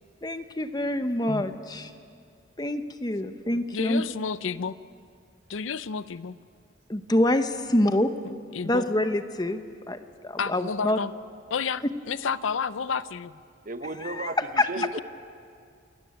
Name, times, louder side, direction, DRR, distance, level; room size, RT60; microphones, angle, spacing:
voice 1, 0.2-1.9 2.6-4.0 6.9-8.1 8.6-11.0 14.0-14.7, left 1 dB, 20° left, 9 dB, 0.9 m, -26 dB
voice 2, 3.7-4.8 5.5-6.4 8.2-8.9 10.4-11.1 11.5-13.4 14.8-15.0, left 5 dB, 85° left, 16 dB, 0.6 m, -31 dB
voice 3, 13.6-15.0, right 2 dB, 45° right, 10 dB, 1.0 m, -34 dB
28.0 x 14.0 x 9.3 m, 2.3 s
head